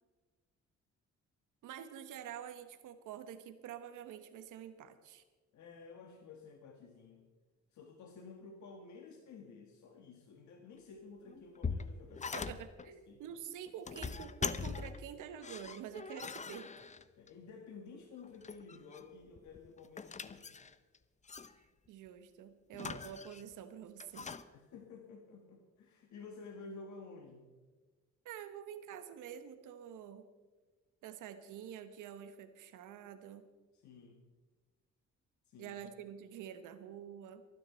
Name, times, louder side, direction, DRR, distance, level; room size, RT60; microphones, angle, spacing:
voice 1, 1.6-5.2 12.3-12.9 13.2-16.9 21.9-24.3 28.2-30.3 31.0-33.5 35.6-37.4, right 9 dB, 85° right, 10 dB, 1.2 m, -47 dB
voice 2, 5.5-7.3 7.7-12.5 12.9-13.2 17.2-20.6 24.5-27.5 33.7-34.2 35.5-35.8, left 4 dB, 70° left, 3 dB, 1.7 m, -52 dB
door wood interior solid open close with bolt, 11.3-12.9 13.7-15.1 15.4-17.3 18.2-19.1 19.4-21.0 21.3-21.5 22.7-23.5 24.0-24.4, left 5 dB, 25° left, 0.6 m, -41 dB
23.5 x 9.8 x 4.4 m, 1.3 s
cardioid pair, 90°, 30 cm